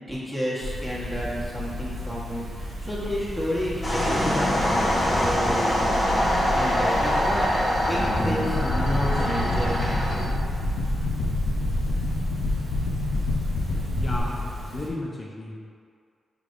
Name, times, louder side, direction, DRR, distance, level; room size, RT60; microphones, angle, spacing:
voice 1, 0.1-4.9 5.2-10.3, equal, 15° right, -7 dB, 1.0 m, -31 dB
sound 1, 0.6-14.9, left 1 dB, 75° right, 0.7 m, -34 dB
sound 2, 3.8-10.2, equal, 10° left, 1.3 m, -24 dB
sound 3, 8.5-14.2, left 1 dB, 85° left, 0.5 m, -27 dB
voice 2, 13.9-15.6, left 1 dB, 30° left, -4 dB, 0.4 m, -34 dB
5.1 x 3.2 x 2.5 m, 2.2 s
wide cardioid pair, 120°, 0 cm